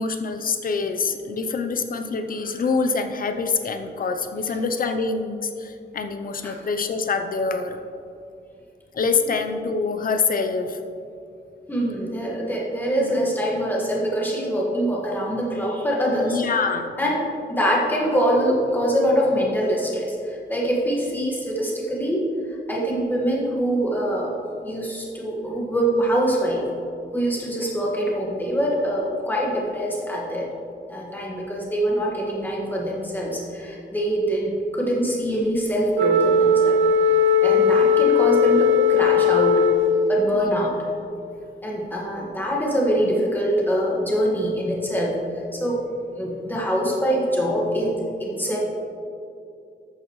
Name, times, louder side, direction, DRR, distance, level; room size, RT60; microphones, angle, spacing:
voice 1, 0.0-7.8 8.9-10.8 13.0-13.3 16.2-16.9, left 4 dB, 50° left, 7 dB, 0.7 m, -25 dB
voice 2, 11.7-16.4 17.0-17.2 17.5-22.2 22.7-24.4 24.6-26.7 27.1-30.5 30.9-36.8 37.4-39.6 40.1-40.7 41.6-45.2 45.5-45.8 46.1-48.6, equal, 10° left, -4 dB, 1.7 m, -24 dB
Wind instrument woodwind instrument, 35.9-40.3, left 4 dB, 85° right, 0.5 m, -18 dB
13.0 x 8.8 x 3.2 m, 2.6 s
wide cardioid pair, 180°, 19 cm